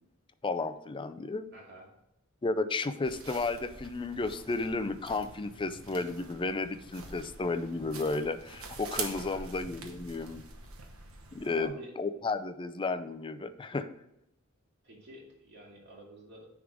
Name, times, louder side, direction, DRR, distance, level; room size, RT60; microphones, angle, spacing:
voice 1, 0.4-1.4 2.4-10.4 11.3-13.9, left 3 dB, 25° left, 10 dB, 0.4 m, -33 dB
voice 2, 1.5-1.9 9.1-9.5 11.5-11.9 14.8-16.5, right 1 dB, 55° right, -2 dB, 2.4 m, -49 dB
sound 1, 3.0-11.7, right 4 dB, 85° right, 1.2 m, -45 dB
9.6 x 3.7 x 4.8 m, 0.85 s
head